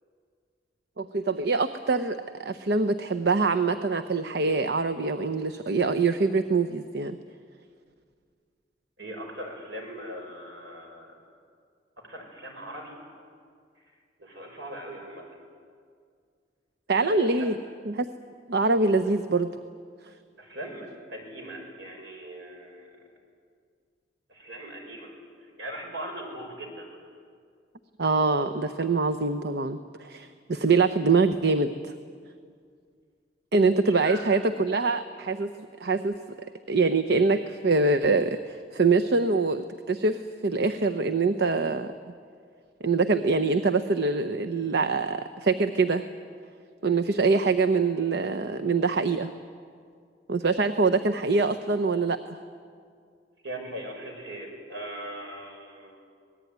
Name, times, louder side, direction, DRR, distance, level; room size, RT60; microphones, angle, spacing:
voice 1, 1.0-7.2 16.9-17.6 17.8-18.1 18.5-19.5 28.0-31.9 33.5-35.5 35.8-36.2 36.7-41.9 42.8-46.1 46.8-49.3 50.3-52.4, right 3 dB, 65° right, 8 dB, 0.8 m, -24 dB
voice 2, 9.0-11.1 12.1-12.9 14.2-15.4 16.9-17.6 20.4-22.9 24.3-25.1 25.6-27.0 34.0-34.2 53.4-56.0, right 1 dB, 80° right, 1 dB, 6.3 m, -40 dB
25.5 x 19.5 x 9.4 m, 2.2 s
head